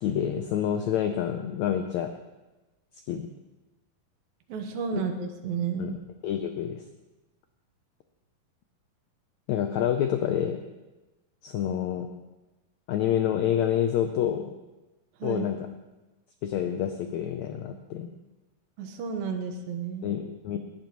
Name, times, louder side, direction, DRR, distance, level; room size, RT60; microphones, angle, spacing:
voice 1, 0.0-2.1 3.1-3.3 4.9-5.0 5.8-6.0 6.2-6.8 9.5-10.6 11.4-12.1 12.9-14.5 15.2-15.6 16.4-18.1 20.0-20.6, left 10 dB, 85° left, 6 dB, 1.6 m, -28 dB
voice 2, 4.5-6.0 15.2-15.5 18.8-20.1, right 6 dB, 85° right, 5 dB, 2.9 m, -32 dB
19.0 x 12.5 x 3.1 m, 1.1 s
omnidirectional pair, 4.1 m